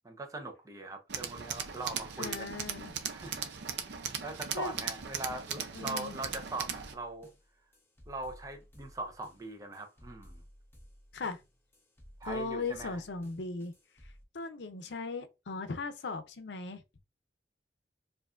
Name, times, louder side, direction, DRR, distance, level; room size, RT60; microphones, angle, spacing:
voice 1, 0.0-2.5 3.1-7.3 8.1-10.4 12.2-13.0, right 2 dB, 20° right, 0.7 m, -41 dB
Tools, 1.1-6.9, right 7 dB, 80° right, 0.6 m, -38 dB
voice 2, 2.2-2.9 4.5-4.7 5.8-6.1 11.1-11.4 12.2-13.7 14.3-16.8, left 3 dB, 80° left, 0.6 m, -38 dB
sound 1, 6.2-14.2, equal, 15° left, 0.8 m, -56 dB
4.6 x 2.6 x 2.5 m
head